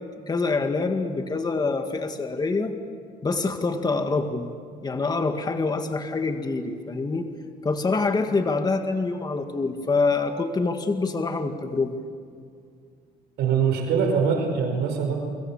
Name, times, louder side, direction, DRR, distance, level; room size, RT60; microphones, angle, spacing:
voice 1, 0.3-2.7 3.2-4.5 4.8-7.3 7.6-12.0, left 3 dB, 25° left, 6 dB, 1.9 m, -25 dB
voice 2, 13.4-15.2, right 6 dB, 80° right, 3 dB, 5.1 m, -23 dB
30.0 x 24.0 x 7.3 m, 2.2 s
cardioid pair, 110°, 17 cm